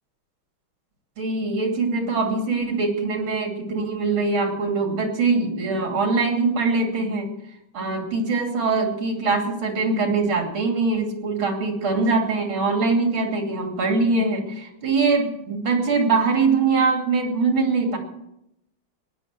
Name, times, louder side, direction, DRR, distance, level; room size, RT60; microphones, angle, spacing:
voice 1, 1.2-7.3 7.7-18.0, right 4 dB, 80° right, 3 dB, 3.7 m, -22 dB
17.0 x 11.0 x 7.6 m, 0.83 s
omnidirectional pair, 2.2 m